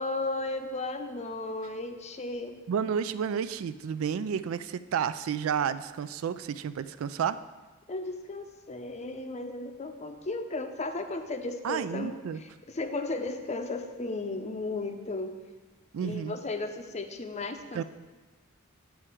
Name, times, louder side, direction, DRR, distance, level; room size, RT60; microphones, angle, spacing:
voice 1, 0.0-2.6 7.9-15.4 16.0-17.8, left 2 dB, 30° left, 7 dB, 0.6 m, -35 dB
voice 2, 2.7-7.4 11.6-12.4 15.9-16.4 17.7-17.8, right 7 dB, 70° right, 13 dB, 0.3 m, -31 dB
8.3 x 4.4 x 6.0 m, 1.3 s
head